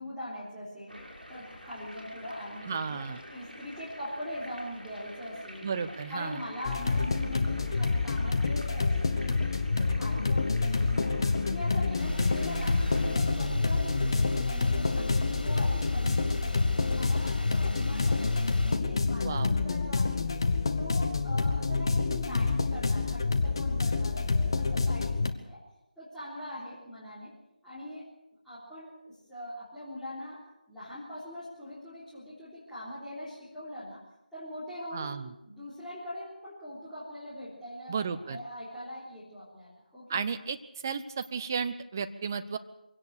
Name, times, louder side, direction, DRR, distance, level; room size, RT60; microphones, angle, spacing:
voice 1, 0.0-5.7 6.1-9.4 9.8-20.3 20.8-25.6 26.0-27.3 27.6-28.1 28.4-30.4 30.7-34.0 34.3-35.2 35.5-40.2, left 1 dB, ahead, -16 dB, 3.5 m, -42 dB
sound 1, 0.9-13.2, equal, 90° right, 6.3 m, -47 dB
voice 2, 2.7-3.2 5.6-6.4 19.2-19.5 34.9-35.3 37.9-38.4 40.1-40.6 40.8-42.6, right 6 dB, 20° right, 9 dB, 0.7 m, -33 dB
sound 2, 6.6-25.3, left 4 dB, 30° left, 1.1 m, -28 dB
sound 3, 12.0-18.8, left 1 dB, 80° left, 3.0 m, -35 dB
23.0 x 17.5 x 6.6 m, 0.89 s
figure-of-eight pair, 160°, 5 cm